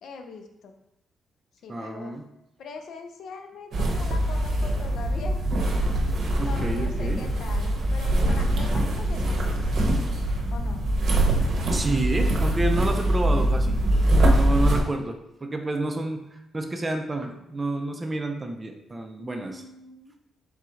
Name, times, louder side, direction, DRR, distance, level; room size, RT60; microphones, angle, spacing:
voice 1, 0.0-0.7 1.6-2.2 2.6-5.4 6.4-9.9 10.5-10.8 19.2-20.1, left 4 dB, 70° left, 5 dB, 0.5 m, -41 dB
voice 2, 1.7-2.2 6.4-7.2 11.7-13.8 14.2-19.6, right 2 dB, 20° right, 5 dB, 0.4 m, -29 dB
sound 1, 3.7-14.8, right 1 dB, 60° right, 0.8 m, -23 dB
3.9 x 2.4 x 4.4 m, 0.84 s
cardioid pair, 130°, 0 cm